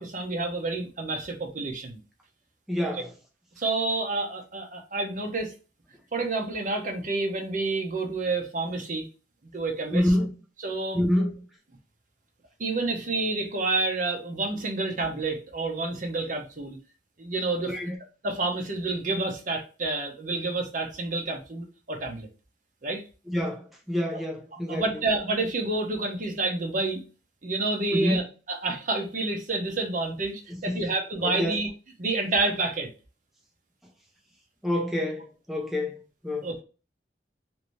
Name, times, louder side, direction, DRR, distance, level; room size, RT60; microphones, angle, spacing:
voice 1, 0.0-2.0 2.9-3.0 3.6-5.5 6.1-9.1 9.5-10.1 10.6-11.0 12.6-16.8 17.2-17.7 18.2-22.3 22.8-23.0 24.7-27.0 27.4-28.2 28.5-31.7 32.0-32.9 36.4-36.6, right 3 dB, 45° right, 0.7 m, -29 dB
voice 2, 2.7-3.1 9.9-10.3 10.9-11.4 17.6-18.0 23.3-25.0 27.9-28.2 30.5-30.9 31.2-31.6 34.6-36.5, left 1 dB, ahead, 0.5 m, -27 dB
2.9 x 2.6 x 3.1 m
head